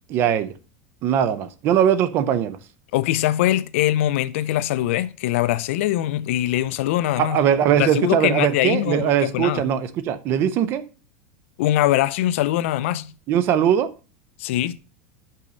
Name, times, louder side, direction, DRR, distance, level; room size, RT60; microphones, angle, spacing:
voice 1, 0.1-0.5 1.0-2.6 7.2-10.8 13.3-13.9, right 9 dB, 35° right, 0.5 m, -20 dB
voice 2, 2.9-7.4 7.8-9.7 11.6-13.1 14.4-14.8, left 14 dB, 70° left, 0.4 m, -22 dB
5.5 x 5.4 x 5.0 m
supercardioid pair, 170°, 7 cm